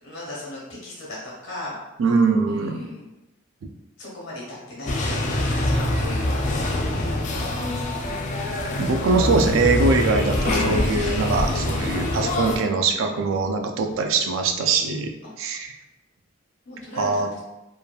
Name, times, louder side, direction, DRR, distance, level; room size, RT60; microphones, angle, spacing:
voice 1, 0.0-1.8 2.0-3.1 4.0-8.1 16.6-17.3, left 2 dB, 90° left, -5 dB, 1.1 m, -38 dB
voice 2, 2.0-2.9 3.6-3.7 8.8-15.7 17.0-17.3, right 4 dB, 75° right, 5 dB, 0.3 m, -22 dB
sound 1, 4.9-12.6, left 1 dB, 35° left, 0.3 m, -24 dB
3.0 x 2.2 x 2.3 m, 1.0 s
head